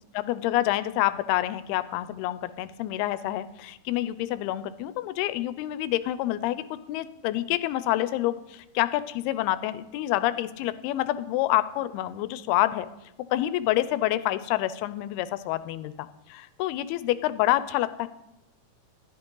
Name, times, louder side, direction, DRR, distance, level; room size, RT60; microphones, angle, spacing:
voice 1, 0.1-12.9 13.3-18.1, left 15 dB, 90° left, 14 dB, 2.5 m, -27 dB
13.5 x 10.5 x 3.8 m, 0.87 s
omnidirectional pair, 4.4 m